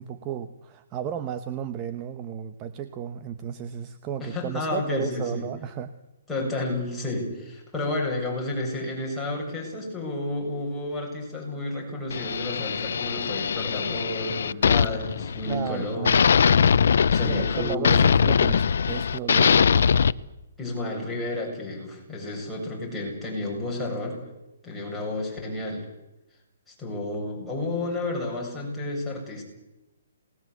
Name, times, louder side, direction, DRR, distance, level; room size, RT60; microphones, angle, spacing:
voice 1, 0.0-5.9 15.5-16.2 17.2-19.9, right 8 dB, 25° right, 10 dB, 1.1 m, -34 dB
voice 2, 4.2-5.5 6.3-16.2 17.1-18.1 20.6-24.2 24.6-25.9 26.7-29.4, left 2 dB, 5° left, -4 dB, 7.8 m, -31 dB
sound 1, 12.1-15.7 16.0-20.1, left 6 dB, 70° left, 0.8 m, -21 dB
27.5 x 20.0 x 8.2 m, 0.95 s
hypercardioid pair, 160°, 0 cm